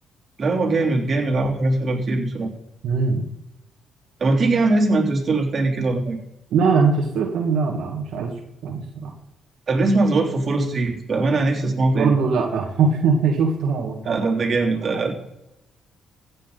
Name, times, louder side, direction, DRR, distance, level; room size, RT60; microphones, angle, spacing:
voice 1, 0.4-2.5 4.2-6.2 9.7-12.1 14.1-15.1, right 2 dB, 45° right, -1 dB, 3.4 m, -21 dB
voice 2, 2.8-3.3 6.5-8.3 8.6-9.1 11.6-14.6 14.9-15.0, right 5 dB, 75° right, 0 dB, 1.9 m, -22 dB
15.5 x 8.9 x 4.1 m, 0.88 s
cardioid pair, 90°, 0 cm